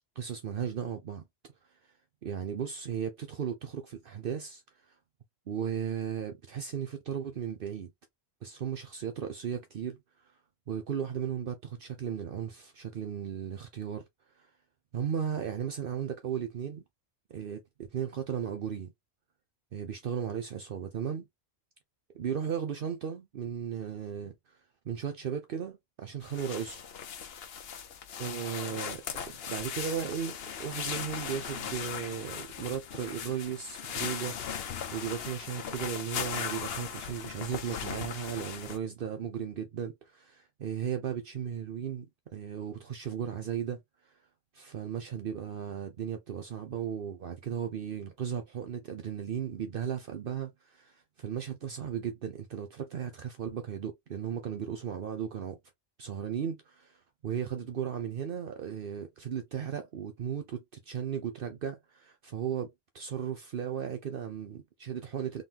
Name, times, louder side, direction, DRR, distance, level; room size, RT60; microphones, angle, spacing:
voice 1, 0.2-1.2 2.2-4.9 5.5-7.9 8.4-10.0 10.7-14.0 14.4-14.5 14.9-16.8 17.3-18.9 19.7-21.3 22.2-24.6 24.8-26.8 28.2-34.5 34.9-42.1 42.3-43.8 44.0-44.1 44.5-55.6 56.0-65.4, right 8 dB, 60° right, 0.8 m, -36 dB
sound 1, 26.2-38.8, left 7 dB, 70° left, 1.0 m, -38 dB
3.8 x 3.6 x 2.8 m
omnidirectional pair, 1.1 m